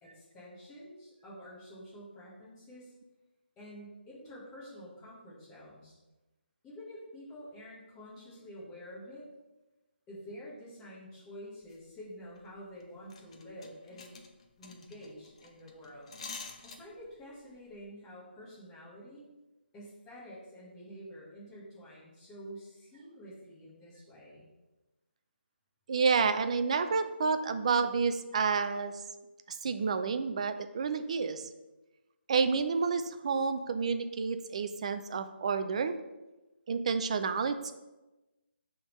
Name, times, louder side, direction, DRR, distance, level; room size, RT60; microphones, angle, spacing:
voice 1, 0.0-2.9 3.6-6.0 6.6-9.3 10.1-14.2 14.6-16.1 16.6-19.3 19.7-24.5, equal, 10° left, -8 dB, 1.2 m, -48 dB
sound 1, 11.6-11.8 12.2-12.5 12.8-12.9 13.1-17.2 17.5-17.7, left 4 dB, 30° left, 0.6 m, -47 dB
voice 2, 25.9-28.9 29.6-31.5 32.3-35.9 36.7-37.7, right 5 dB, 35° right, 9 dB, 0.4 m, -29 dB
10.5 x 3.6 x 3.1 m, 1.1 s
hypercardioid pair, 170°, 6 cm